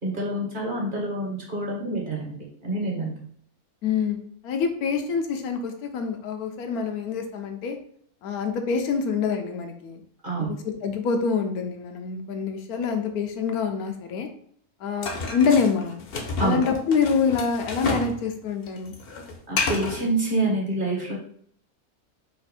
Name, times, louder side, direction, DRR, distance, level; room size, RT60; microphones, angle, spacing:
voice 1, 0.0-3.1 10.2-10.5 16.4-16.6 19.5-21.2, right 2 dB, 40° right, -2 dB, 1.2 m, -27 dB
voice 2, 3.8-4.2 4.4-7.8 8.2-10.0 10.4-14.3 14.8-16.1 16.4-18.9, left 5 dB, 85° left, 5 dB, 1.1 m, -26 dB
sound 1, 15.0-18.2 18.4-20.0, left 3 dB, 50° left, 0.7 m, -30 dB
4.4 x 2.5 x 4.1 m, 0.63 s
omnidirectional pair, 1.5 m